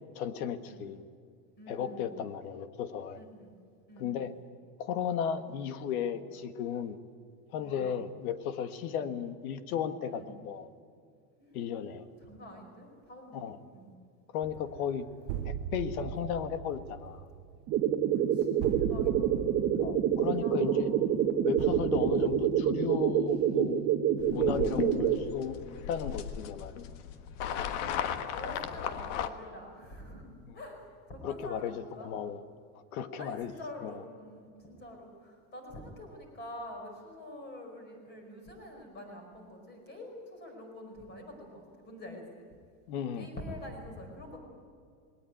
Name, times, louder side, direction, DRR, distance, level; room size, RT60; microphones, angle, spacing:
voice 1, 0.1-1.0 1.7-3.2 4.0-4.3 4.8-7.0 7.5-10.7 11.5-12.1 13.3-13.6 14.3-15.0 15.4-17.2 19.8-20.9 21.4-23.8 24.3-25.6 25.9-26.9 30.5-30.6 31.2-32.4 32.9-33.5 33.8-34.0 42.9-43.3, left 8 dB, 70° left, 11 dB, 1.7 m, -35 dB
voice 2, 1.6-2.2 3.1-3.5 3.9-4.2 7.6-8.0 8.9-9.0 10.1-10.3 11.4-11.9 12.2-13.9 18.1-19.3 20.4-20.9 24.6-24.8 27.6-32.1 33.2-42.5 43.1-44.4, left 1 dB, 20° left, 3 dB, 5.0 m, -47 dB
sound 1, 14.4-23.8, right 8 dB, 45° right, 0.8 m, -41 dB
sound 2, 17.7-25.2, right 9 dB, 30° right, 1.3 m, -27 dB
sound 3, 24.2-29.3, left 9 dB, 50° left, 1.4 m, -36 dB
20.0 x 18.5 x 9.2 m, 2.3 s
supercardioid pair, 175°, 44 cm